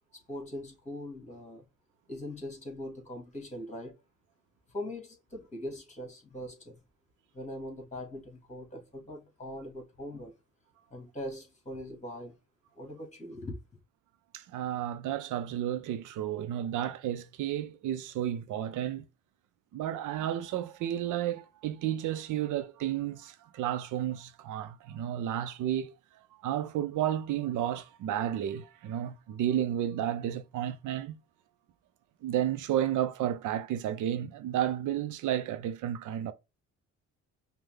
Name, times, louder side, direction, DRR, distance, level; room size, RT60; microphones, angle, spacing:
voice 1, 0.1-1.7 2.1-3.9 4.7-6.8 7.3-10.3 10.9-12.4 12.7-13.6, left 1 dB, 25° left, 2.1 m, -41 dB
voice 2, 14.3-19.0 19.7-25.9 26.4-31.2 32.2-36.3, right 11 dB, 80° right, 0.6 m, -32 dB
5.5 x 2.3 x 3.5 m
cardioid pair, 90°, 30 cm